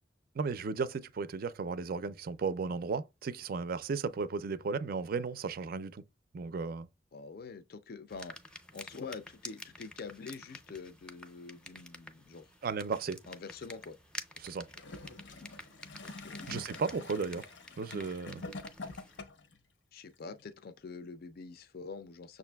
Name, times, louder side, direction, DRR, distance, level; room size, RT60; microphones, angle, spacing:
voice 1, 0.4-6.0 6.3-6.9 12.6-13.2 14.4-14.7 16.5-17.5 17.8-18.5, right 4 dB, 55° right, 0.4 m, -35 dB
voice 2, 7.1-8.3 8.7-12.5 13.3-14.0 16.0-16.4 19.9-22.4, left 4 dB, 55° left, 0.5 m, -45 dB
sound 1, 8.1-19.2, left 1 dB, 5° left, 0.5 m, -50 dB
Gurgling / Toilet flush, 14.7-19.6 20.4-20.5, left 3 dB, 90° left, 0.8 m, -46 dB
6.6 x 2.5 x 2.2 m
head